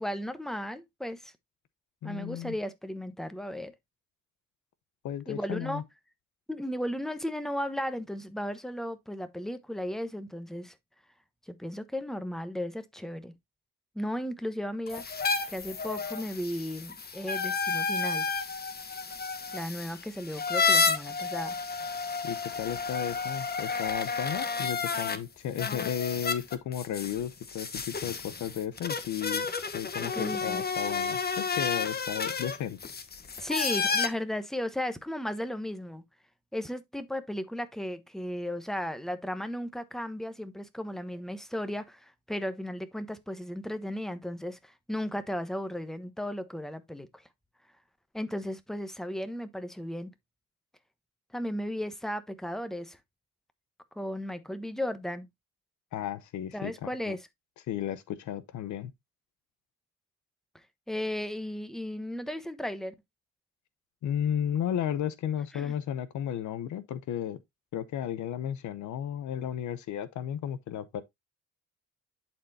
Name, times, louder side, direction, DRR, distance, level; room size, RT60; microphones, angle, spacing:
voice 1, 0.0-1.3 2.0-3.7 5.3-5.8 6.5-10.8 11.5-13.3 13.9-18.3 19.5-21.6 30.0-30.6 33.4-36.0 36.5-47.2 48.1-50.1 51.3-53.0 53.9-55.3 56.5-57.3 60.5-62.9 65.5-65.7, equal, ahead, 1.0 m, -35 dB
voice 2, 2.0-2.5 5.0-5.8 22.2-29.5 29.7-32.9 55.9-57.2 57.7-58.9 64.0-67.4 67.7-71.0, left 10 dB, 75° left, 0.8 m, -34 dB
sound 1, 14.9-25.2 25.6-34.1, left 5 dB, 30° left, 1.1 m, -31 dB
11.0 x 4.4 x 2.7 m
cardioid pair, 90°, 30 cm